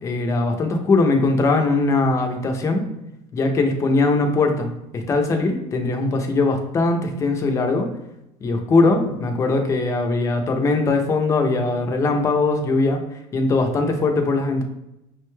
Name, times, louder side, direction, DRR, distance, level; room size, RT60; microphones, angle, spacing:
voice 1, 0.0-2.8 3.3-7.9 8.4-13.0 13.3-14.6, left 3 dB, 25° left, 4 dB, 0.5 m, -20 dB
6.0 x 2.2 x 3.1 m, 0.87 s
cardioid pair, 165°, 13 cm